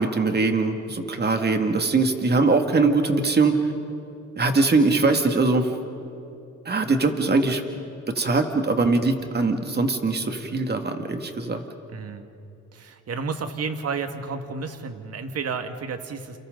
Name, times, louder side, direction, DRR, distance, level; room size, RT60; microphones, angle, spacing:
voice 1, 0.0-3.6 4.4-5.7 6.7-7.6 8.2-11.6, right 3 dB, 35° right, 5 dB, 2.3 m, -22 dB
voice 2, 11.9-12.3 12.7-16.4, right 5 dB, 55° right, 7 dB, 2.0 m, -31 dB
30.0 x 29.0 x 4.0 m, 2.8 s
cardioid pair, 90°, 30 cm